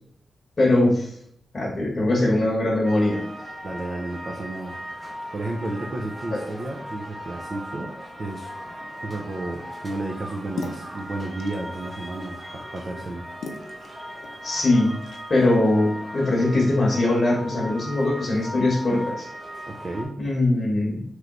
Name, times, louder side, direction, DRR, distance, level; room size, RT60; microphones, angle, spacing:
voice 1, 0.6-1.1 1.5-3.2 6.3-6.4 14.4-15.0 15.3-19.3 20.2-21.0, left 2 dB, 35° left, -5 dB, 1.1 m, -21 dB
sound 1, 2.8-20.0, equal, 20° right, 0.9 m, -38 dB
voice 2, 3.6-4.8 5.3-7.9 8.2-8.5 9.0-13.3 19.7-20.2, right 2 dB, 40° right, 0 dB, 0.5 m, -32 dB
sound 2, 10.1-15.2, left 3 dB, 75° left, 0.6 m, -40 dB
3.2 x 3.0 x 3.7 m, 0.70 s
wide cardioid pair, 140°, 0 cm